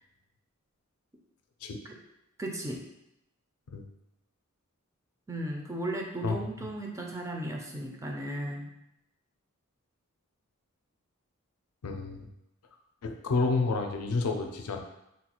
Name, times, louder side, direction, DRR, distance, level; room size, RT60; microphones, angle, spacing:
voice 1, 2.4-2.8 5.3-8.7, right 1 dB, 15° right, 0 dB, 0.4 m, -35 dB
voice 2, 11.8-12.3 13.0-14.8, left 3 dB, 85° left, 4 dB, 0.4 m, -30 dB
3.8 x 2.3 x 2.9 m, 0.84 s
head